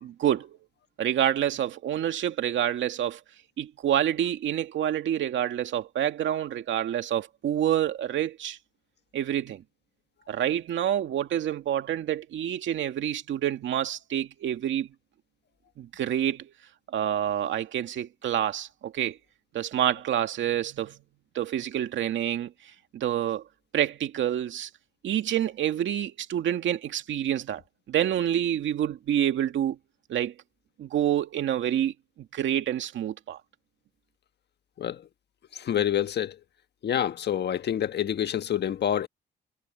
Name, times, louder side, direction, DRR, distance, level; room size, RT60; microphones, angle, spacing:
voice 1, 0.0-0.6 1.0-3.2 3.6-8.6 9.1-9.6 10.3-14.9 15.8-16.5 16.9-19.2 19.5-21.0 21.3-22.5 22.9-23.4 23.7-24.7 25.0-27.6 27.9-29.8 30.1-30.3 30.8-31.9 32.3-33.4, right 10 dB, 70° right, 2.2 m, -27 dB
voice 2, 35.5-36.3 36.8-39.1, left 10 dB, 55° left, 1.4 m, -27 dB
cardioid pair, 90°, 20 cm